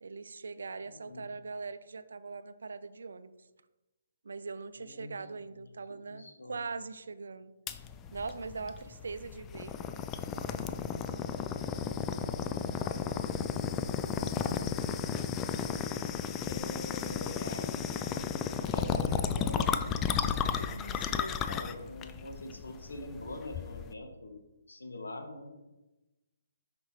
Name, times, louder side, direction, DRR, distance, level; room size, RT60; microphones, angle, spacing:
voice 1, 0.0-3.3 4.2-7.5 8.1-9.7, right 4 dB, 70° right, 13 dB, 0.4 m, -41 dB
voice 2, 4.8-5.2 5.5-5.6 6.1-6.6 16.4-17.8 18.7-24.4 24.7-25.5, left 2 dB, 80° left, 4 dB, 1.1 m, -44 dB
sound 1, 7.7-23.9, left 7 dB, 20° left, 0.3 m, -33 dB
6.4 x 5.2 x 3.1 m, 1.0 s
figure-of-eight pair, 140°, 0 cm